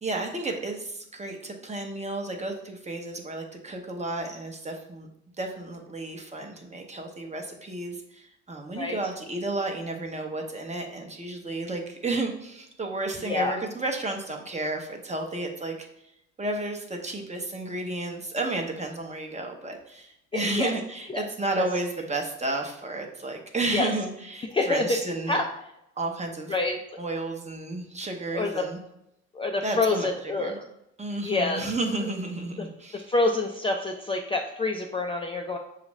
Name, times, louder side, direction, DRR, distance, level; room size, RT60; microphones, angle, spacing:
voice 1, 0.0-5.1 5.4-15.9 16.4-25.4 26.0-26.5 27.0-28.8 29.6-30.1 30.4-30.6 31.0-33.1, right 2 dB, 25° right, 2 dB, 0.8 m, -32 dB
voice 2, 13.2-13.5 20.3-20.7 21.1-21.2 21.6-21.7 23.7-23.9 24.5-25.0 25.3-25.4 26.5-26.8 28.3-28.7 29.3-30.5 31.2-31.6 32.0-32.1 32.6-32.7 32.9-35.6, left 3 dB, 20° left, 1 dB, 0.4 m, -27 dB
6.2 x 2.4 x 3.1 m, 0.81 s
cardioid pair, 90°, 30 cm